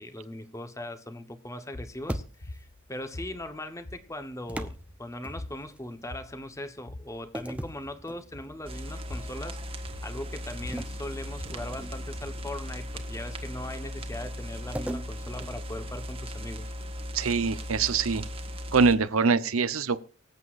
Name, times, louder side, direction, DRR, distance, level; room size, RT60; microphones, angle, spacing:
voice 1, 0.0-16.7, left 1 dB, 15° left, 1.1 m, -40 dB
sound 1, 1.7-13.7, left 1 dB, 90° left, 1.8 m, -46 dB
sound 2, 2.1-2.7 4.5-5.8 7.3-8.7 9.2-9.4 10.7-12.2 14.8-16.4, equal, 5° right, 0.7 m, -39 dB
sound 3, 8.7-19.0, equal, 25° right, 1.4 m, -37 dB
voice 2, 17.1-18.2 18.7-20.0, right 5 dB, 85° right, 0.8 m, -24 dB
24.5 x 8.3 x 2.5 m
head